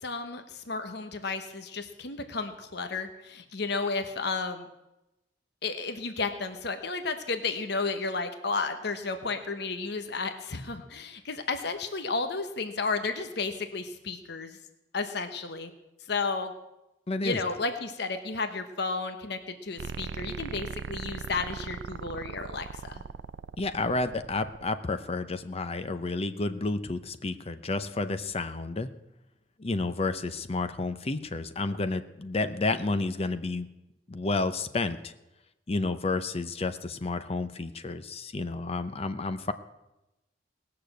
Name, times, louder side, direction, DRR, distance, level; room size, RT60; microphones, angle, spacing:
voice 1, 0.0-4.7 5.6-14.6 14.9-15.7 16.1-16.5 17.2-23.0, left 4 dB, 65° left, 8 dB, 1.1 m, -32 dB
voice 2, 17.1-17.4 23.6-28.9 29.6-33.7 34.1-35.1 35.7-39.5, left 3 dB, 35° left, 11 dB, 0.6 m, -31 dB
sound 1, 19.8-24.8, right 5 dB, 75° right, 0.4 m, -39 dB
19.0 x 6.7 x 7.8 m, 0.95 s
head